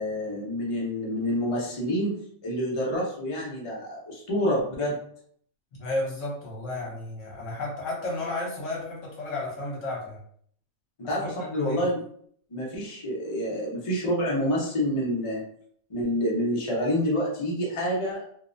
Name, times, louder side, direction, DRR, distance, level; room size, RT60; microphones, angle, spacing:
voice 1, 0.0-2.2 2.4-5.0 11.0-12.0 12.5-15.4 15.9-18.2, equal, 45° left, -4 dB, 0.4 m, -28 dB
voice 2, 5.8-10.2 11.2-11.8, left 2 dB, 60° left, -3 dB, 1.1 m, -33 dB
2.7 x 2.1 x 2.5 m, 0.62 s
omnidirectional pair, 1.6 m